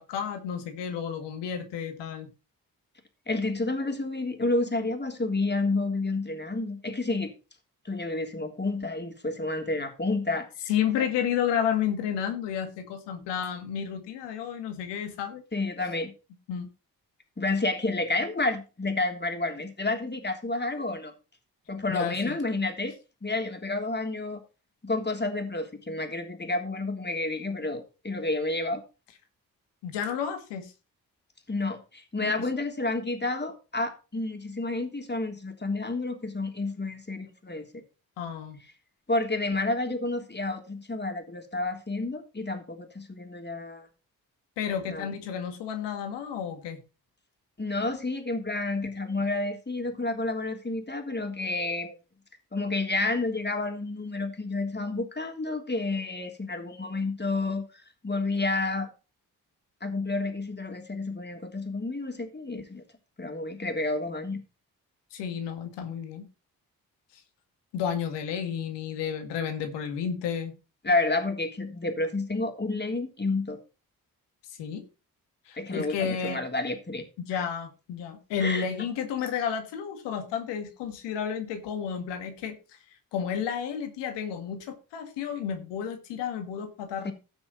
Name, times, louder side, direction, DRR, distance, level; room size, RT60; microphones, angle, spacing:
voice 1, 0.0-2.3 10.7-15.4 16.5-16.7 21.9-22.4 29.8-30.7 32.2-32.3 38.2-38.6 44.6-46.8 65.1-66.3 67.7-70.5 74.5-74.8 75.5-76.4 77.3-82.8 83.1-87.1, left 8 dB, 90° left, 7 dB, 2.0 m, -31 dB
voice 2, 3.3-7.3 7.8-10.5 15.5-16.1 17.4-21.1 21.7-22.9 23.2-24.4 24.8-28.8 31.5-37.8 39.1-43.9 44.9-45.1 47.6-51.9 52.5-57.6 58.0-58.9 59.8-62.8 63.2-64.4 70.8-73.6 75.6-77.0 77.3-77.5 78.4-78.6 87.0-87.1, left 2 dB, 25° left, 5 dB, 3.3 m, -30 dB
16.5 x 6.1 x 4.0 m, 0.31 s
supercardioid pair, 40°, 41 cm